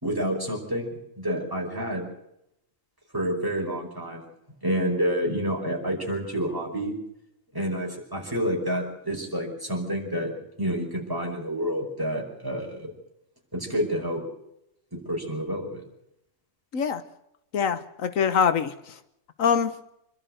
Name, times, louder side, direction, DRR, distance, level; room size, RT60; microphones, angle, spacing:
voice 1, 0.0-2.1 3.1-4.3 4.6-6.9 7.5-10.3 10.6-12.9 13.5-14.2 14.9-15.8, equal, 15° right, 0 dB, 5.4 m, -29 dB
voice 2, 17.5-19.0 19.4-19.7, left 7 dB, 80° left, 11 dB, 1.5 m, -24 dB
26.5 x 12.5 x 7.9 m, 0.82 s
omnidirectional pair, 1.4 m